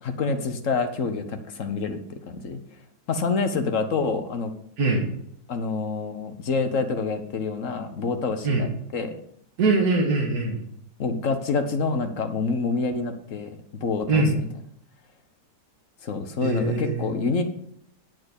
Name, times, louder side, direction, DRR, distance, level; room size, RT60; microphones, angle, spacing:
voice 1, 0.0-2.6 3.1-4.5 5.5-9.1 11.0-14.4 16.0-17.4, left 4 dB, 50° left, 7 dB, 1.2 m, -27 dB
voice 2, 9.6-10.6 14.1-14.3 16.4-17.1, right 3 dB, 60° right, -1 dB, 2.1 m, -22 dB
10.5 x 4.7 x 8.0 m, 0.71 s
omnidirectional pair, 1.9 m